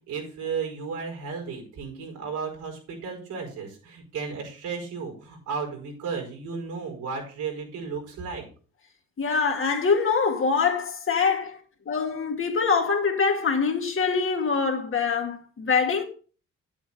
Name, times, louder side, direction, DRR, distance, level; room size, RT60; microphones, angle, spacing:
voice 1, 0.1-8.4, right 5 dB, 85° right, 5.3 m, -34 dB
voice 2, 9.2-11.6 11.9-16.0, left 5 dB, 45° left, 2.2 m, -24 dB
10.0 x 8.7 x 4.3 m
cardioid pair, 90°, 30 cm